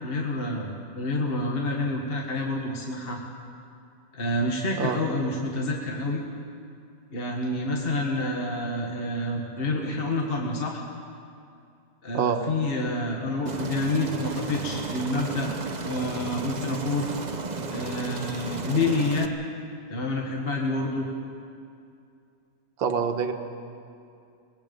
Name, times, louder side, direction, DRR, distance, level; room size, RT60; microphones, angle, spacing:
voice 1, 0.0-3.2 4.1-6.2 7.1-10.8 12.0-15.5 15.8-17.1 17.7-19.3 19.9-21.1, left 2 dB, 30° left, -1 dB, 1.5 m, -28 dB
Aircraft, 13.5-19.3, right 4 dB, 45° right, 0.5 m, -34 dB
voice 2, 22.8-23.3, right 6 dB, 75° right, 6 dB, 1.9 m, -25 dB
25.0 x 20.5 x 5.3 m, 2.5 s
omnidirectional pair, 2.1 m